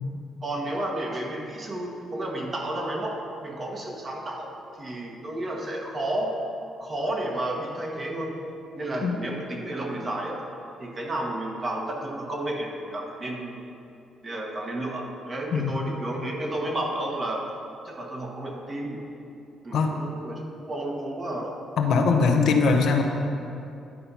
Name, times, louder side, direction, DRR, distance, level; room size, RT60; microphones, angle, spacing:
voice 1, 0.4-6.4 6.8-8.4 8.8-10.4 10.8-13.6 14.2-17.4 17.8-19.0 19.6-21.5, right 1 dB, 35° right, 0 dB, 1.4 m, -32 dB
voice 2, 21.8-23.0, left 4 dB, 70° left, 3 dB, 0.8 m, -21 dB
11.0 x 4.3 x 5.6 m, 2.7 s
cardioid pair, 90°, 0 cm